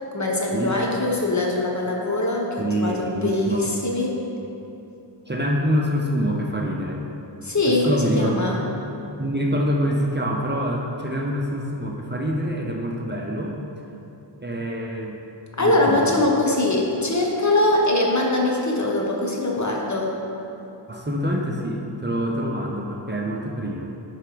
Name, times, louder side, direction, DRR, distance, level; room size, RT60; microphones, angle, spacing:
voice 1, 0.1-4.1 7.4-8.6 15.6-20.1, left 2 dB, 40° left, -1 dB, 1.2 m, -22 dB
voice 2, 2.6-3.7 5.3-7.0 7.7-8.7 9.2-13.6 14.4-15.2 15.6-16.1 20.9-23.9, equal, 25° right, -1 dB, 0.8 m, -26 dB
10.5 x 3.5 x 5.1 m, 2.9 s
wide cardioid pair, 55°, 45 cm